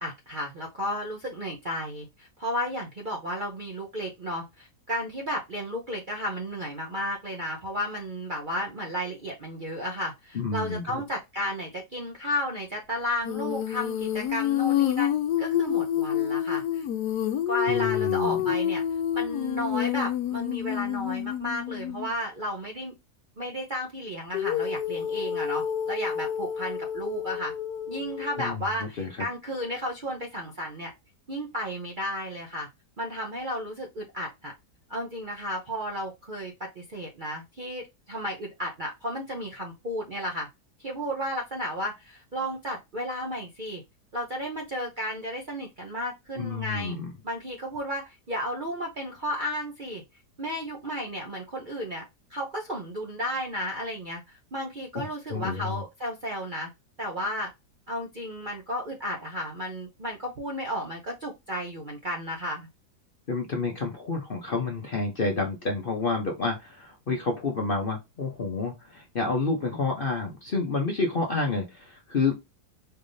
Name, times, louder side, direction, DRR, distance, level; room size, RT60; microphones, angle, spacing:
voice 1, 0.0-15.1 15.4-16.8 17.5-18.8 19.1-22.9 23.4-27.5 27.9-30.9 31.3-32.7 33.0-34.5 34.9-40.5 40.8-43.8 44.1-47.0 47.2-50.0 50.4-52.0 52.3-54.2 54.5-56.7 57.0-57.5 57.9-62.7, equal, 45° right, 0.7 m, -33 dB
voice 2, 10.3-10.8 17.7-18.4 28.4-29.1 46.4-47.1 54.9-55.8 63.3-72.3, left 3 dB, 45° left, 0.7 m, -29 dB
Female singing, 13.2-22.1 24.3-28.5, left 10 dB, 75° left, 1.1 m, -28 dB
4.5 x 3.4 x 2.6 m
omnidirectional pair, 1.7 m